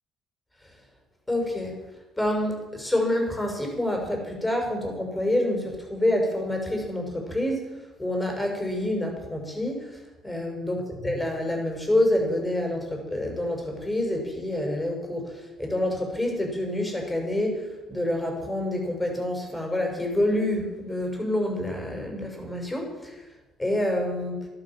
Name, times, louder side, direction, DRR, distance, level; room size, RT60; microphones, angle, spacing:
voice 1, 1.3-1.8 2.2-7.7 8.0-23.2 23.6-24.5, left 1 dB, 15° left, 2 dB, 6.6 m, -27 dB
15.0 x 11.5 x 7.7 m, 1.1 s
supercardioid pair, 65°, 0 cm